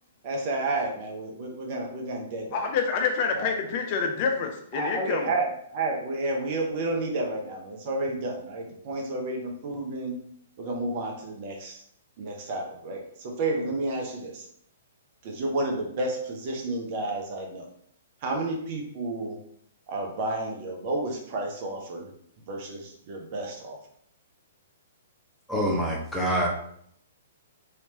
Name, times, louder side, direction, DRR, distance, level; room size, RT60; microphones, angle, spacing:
voice 1, 0.2-2.7 3.3-3.6 4.7-10.1 10.6-11.8 12.2-14.5 15.2-17.7 18.2-19.4 19.9-22.1 22.5-23.8, right 2 dB, 40° right, 1 dB, 0.7 m, -31 dB
voice 2, 2.5-5.3, left 5 dB, 40° left, 3 dB, 0.5 m, -27 dB
voice 3, 25.5-26.5, equal, ahead, -3 dB, 0.8 m, -25 dB
3.3 x 2.9 x 2.8 m, 0.67 s
figure-of-eight pair, 115°, 0 cm